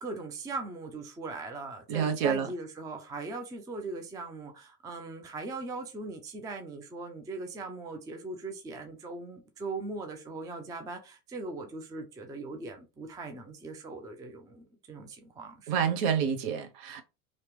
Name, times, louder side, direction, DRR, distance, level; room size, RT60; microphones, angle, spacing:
voice 1, 0.0-15.8, right 3 dB, 10° right, 0.4 m, -40 dB
voice 2, 1.9-2.5 15.7-17.0, right 7 dB, 55° right, 0.9 m, -28 dB
2.9 x 2.9 x 3.3 m
hypercardioid pair, 100°, 44 cm